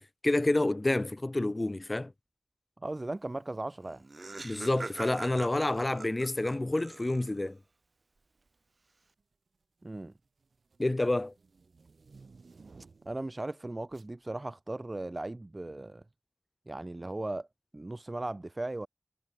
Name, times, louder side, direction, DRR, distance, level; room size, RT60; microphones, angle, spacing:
voice 1, 0.0-2.1 4.4-7.6 10.8-11.3, left 2 dB, 35° left, 0.4 m, -29 dB
voice 2, 2.8-4.0 9.8-10.1 13.1-16.0 16.7-17.5 17.7-18.9, right 2 dB, 35° right, 0.7 m, -37 dB
Laughter, 3.5-3.6 3.8-7.5, right 2 dB, 50° right, 1.2 m, -43 dB
sound 1, 7.1-7.3 8.2-8.7 9.0-13.3 13.9-14.2, right 4 dB, 90° right, 3.4 m, -58 dB
wide cardioid pair, 60°, 0 cm